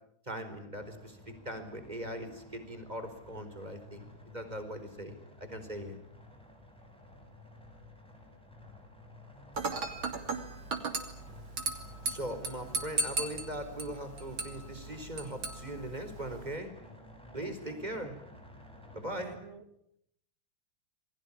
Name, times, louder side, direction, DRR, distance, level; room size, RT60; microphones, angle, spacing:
voice 1, 0.2-6.0 12.0-16.7 17.3-18.1 18.9-19.3, right 1 dB, 20° right, 8 dB, 4.6 m, -40 dB
sound 1, 0.7-19.4, left 1 dB, ahead, 7.1 m, -53 dB
Dishes pots and pans / Glass, 9.6-16.6, right 3 dB, 80° right, 3.7 m, -37 dB
voice 2, 17.4-18.1 19.0-19.6, right 3 dB, 35° right, 8 dB, 2.9 m, -50 dB
28.0 x 22.0 x 8.8 m, 0.74 s
omnidirectional pair, 2.2 m